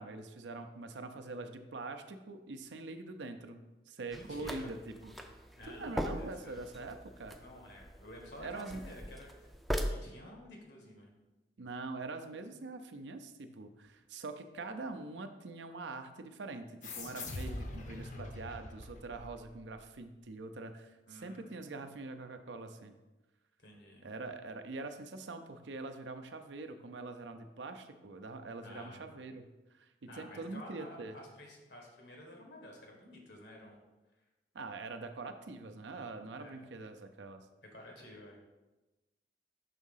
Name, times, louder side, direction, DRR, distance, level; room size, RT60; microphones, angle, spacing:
voice 1, 0.0-3.6 3.9-5.1 5.7-7.4 8.4-8.8 11.6-16.7 16.9-22.9 24.0-29.4 29.7-31.2 34.5-37.5, right 3 dB, 85° right, 8 dB, 0.6 m, -44 dB
voice 2, 4.1-4.7 5.5-6.6 7.4-9.5 9.9-11.2 21.1-21.5 23.6-24.0 28.6-29.3 30.1-33.8 36.3-36.6 37.7-38.4, left 1 dB, 80° left, 0 dB, 1.5 m, -52 dB
sound 1, 4.1-9.9, equal, ahead, 0.4 m, -41 dB
sound 2, 16.8-19.9, left 2 dB, 45° left, 0.7 m, -43 dB
5.8 x 3.6 x 5.6 m, 1.1 s
head